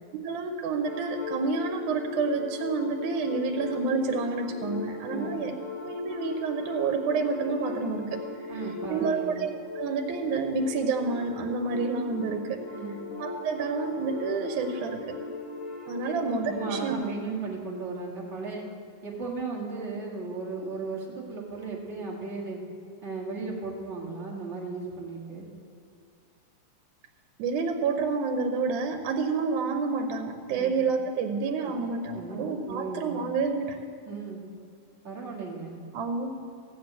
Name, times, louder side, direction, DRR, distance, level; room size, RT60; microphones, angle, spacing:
voice 1, 0.2-5.5 5.8-8.6 8.9-12.6 13.2-15.2 15.9-17.0 27.4-33.8 35.9-36.3, right 4 dB, 80° right, 5 dB, 2.2 m, -29 dB
sound 1, 0.9-16.9, left 3 dB, 65° left, 2.8 m, -38 dB
voice 2, 8.5-9.3 12.7-13.0 16.0-16.1 16.5-18.6 19.0-22.6 23.0-25.5 30.5-30.8 31.6-33.2 34.0-34.4 35.0-35.8, right 4 dB, 30° right, -2 dB, 1.5 m, -36 dB
15.0 x 6.0 x 8.4 m, 2.3 s
omnidirectional pair, 3.5 m